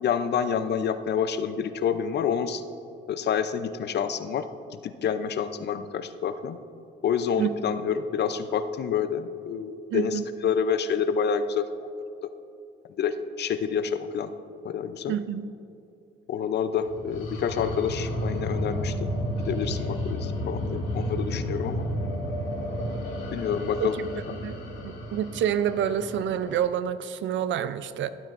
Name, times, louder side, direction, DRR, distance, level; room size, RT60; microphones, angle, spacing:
voice 1, 0.0-2.6 3.1-4.5 4.8-6.6 7.0-11.7 13.0-14.3 14.6-15.1 16.3-19.0 19.5-21.8 23.3-24.0, left 7 dB, 60° left, 11 dB, 0.6 m, -28 dB
voice 2, 9.9-10.2 15.1-15.5 23.8-24.1 24.4-28.1, right 9 dB, 70° right, 14 dB, 0.5 m, -28 dB
sound 1, 16.9-26.6, equal, 90° left, 2.1 m, -32 dB
12.5 x 12.0 x 2.6 m, 2.6 s
cardioid pair, 90°, 20 cm